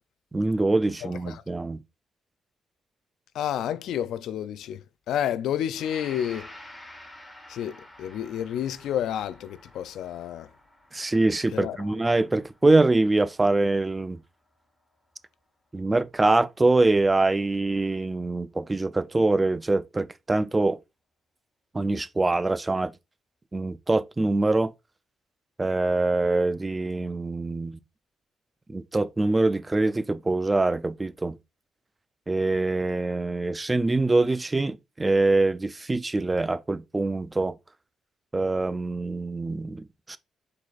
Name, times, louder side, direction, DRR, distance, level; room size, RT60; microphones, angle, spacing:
voice 1, 0.3-1.8 10.9-14.2 15.7-20.8 21.7-22.9 23.5-24.7 25.6-27.8 28.7-31.3 32.3-37.6 38.3-40.2, right 2 dB, 20° right, 0.3 m, -24 dB
voice 2, 1.0-1.4 3.4-4.8 5.1-6.5 7.5-10.5 11.5-11.8, left 10 dB, 80° left, 0.3 m, -30 dB
Gong, 5.7-14.1 14.5-14.7, left 1 dB, 10° left, 1.5 m, -49 dB
4.6 x 3.9 x 2.4 m
cardioid pair, 90°, 0 cm